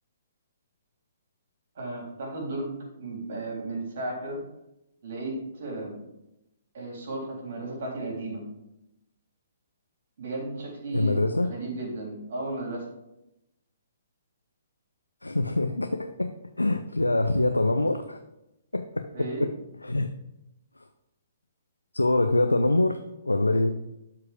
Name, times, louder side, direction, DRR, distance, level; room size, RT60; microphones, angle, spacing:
voice 1, 1.8-4.5 5.0-6.0 6.7-8.5 10.2-12.9 19.1-19.5, right 2 dB, 50° right, 0 dB, 3.5 m, -34 dB
voice 2, 10.9-11.5 15.2-18.2 18.7-19.5 19.8-20.1 21.9-23.0 23.3-23.7, left 2 dB, 80° left, 6 dB, 0.6 m, -24 dB
12.0 x 4.8 x 5.1 m, 0.90 s
figure-of-eight pair, 125°, 0 cm